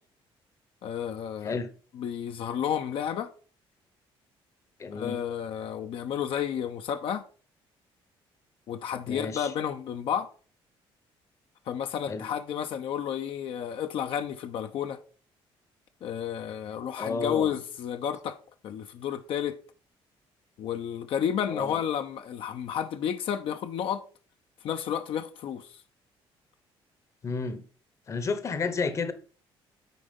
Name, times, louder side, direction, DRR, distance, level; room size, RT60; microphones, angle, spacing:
voice 1, 0.8-1.6 1.9-3.3 4.9-7.2 8.7-10.3 11.7-15.0 16.0-18.4 18.6-19.6 20.6-24.0 24.6-25.7, left 9 dB, 65° left, 0.8 m, -31 dB
voice 2, 4.8-5.2 9.1-9.5 12.1-12.3 17.0-17.6 21.5-21.8 27.2-27.6 28.1-29.1, left 4 dB, 30° left, 0.9 m, -31 dB
9.3 x 4.2 x 5.3 m
cardioid pair, 135°, 10 cm